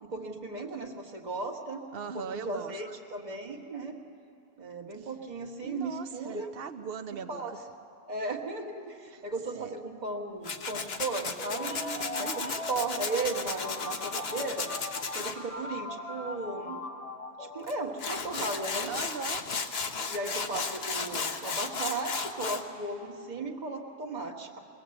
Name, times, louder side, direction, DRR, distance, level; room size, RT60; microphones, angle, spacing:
voice 1, 0.0-1.8 2.1-4.0 4.6-6.5 7.3-7.5 8.1-11.7 12.2-12.3 12.7-14.7 15.1-16.8 17.4-18.9 20.1-24.6, right 3 dB, 40° right, 2 dB, 1.7 m, -36 dB
voice 2, 1.9-2.8 5.0-5.1 5.6-7.6 9.1-9.2 9.5-9.8 11.6-12.7 18.9-19.4, right 6 dB, 65° right, 9 dB, 1.1 m, -40 dB
Tools, 10.4-15.3 17.7-17.8 18.0-22.6, left 4 dB, 70° left, 1.3 m, -34 dB
sound 1, 11.4-18.2, left 2 dB, 35° left, 0.8 m, -40 dB
22.5 x 19.0 x 7.8 m, 2.5 s
omnidirectional pair, 1.1 m